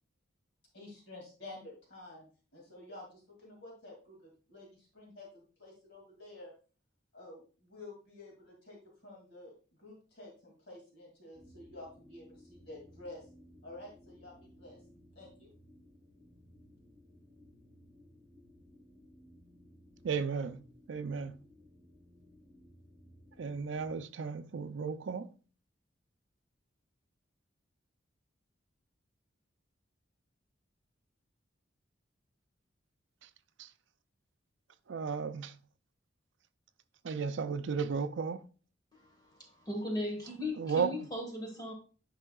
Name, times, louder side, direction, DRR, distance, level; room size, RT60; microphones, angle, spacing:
voice 1, 0.7-2.2 2.5-6.5 7.1-8.8 9.0-9.5 9.8-13.3 13.6-14.8 15.2-15.5, left 2 dB, 60° left, 2.4 m, -50 dB
sound 1, 11.3-23.9, left 1 dB, 30° right, 3.7 m, -59 dB
voice 2, 20.0-20.6 20.9-21.4 23.4-25.3 33.6-33.7 34.9-35.6 37.0-38.4 40.6-40.9, right 5 dB, 75° right, 0.4 m, -34 dB
voice 3, 38.9-41.7, left 1 dB, 20° left, 1.3 m, -38 dB
9.9 x 5.4 x 2.3 m
head